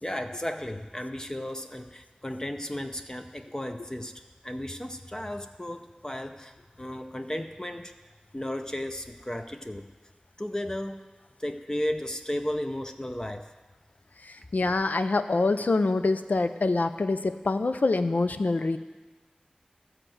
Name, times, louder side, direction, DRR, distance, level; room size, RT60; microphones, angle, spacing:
voice 1, 0.0-4.1 4.4-7.9 8.3-9.9 10.4-11.0 11.4-13.5, left 1 dB, 25° left, 6 dB, 0.6 m, -34 dB
voice 2, 14.2-18.8, left 3 dB, 85° left, 10 dB, 0.5 m, -25 dB
13.5 x 4.5 x 7.8 m, 1.3 s
wide cardioid pair, 45°, 3 cm